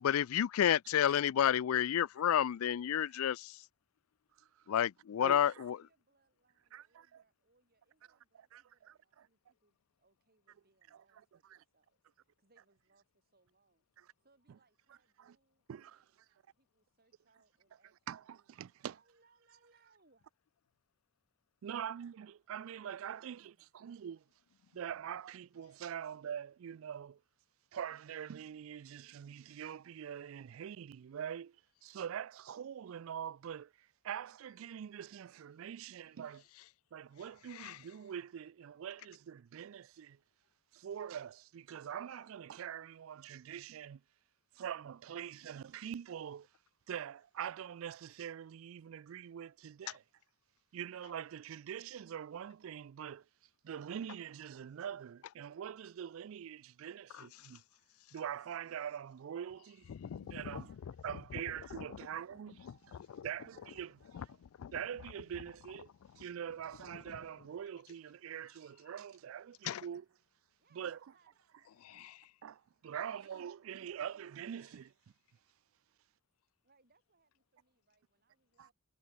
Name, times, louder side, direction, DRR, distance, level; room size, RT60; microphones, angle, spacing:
voice 1, 0.0-3.6 4.7-5.8 37.5-37.8 57.1-57.4 59.9-60.6 61.3-61.4 61.7-62.0 62.6-62.7 63.1-63.3 64.1-64.3 64.6-64.8 67.1-67.2 69.6-69.9, left 9 dB, 85° left, 0.4 m, -31 dB
voice 2, 5.5-13.9 14.2-20.3 21.7-22.0 23.2-23.7 60.4-60.8 61.4-64.1 70.6-71.4 71.9-72.1 73.0-74.2 76.6-78.7, right 3 dB, 45° right, 6.1 m, -73 dB
voice 3, 21.6-23.4 23.8-24.2 24.7-27.2 27.7-31.5 31.8-33.7 34.0-36.4 36.9-40.2 40.8-44.0 44.6-46.4 46.9-50.0 50.7-53.2 53.6-57.6 58.1-59.8 60.3-60.6 61.0-62.5 63.2-64.0 64.7-65.9 66.2-70.0 70.8-70.9 72.4-72.6 72.8-74.9, right 9 dB, 70° right, 0.3 m, -43 dB
head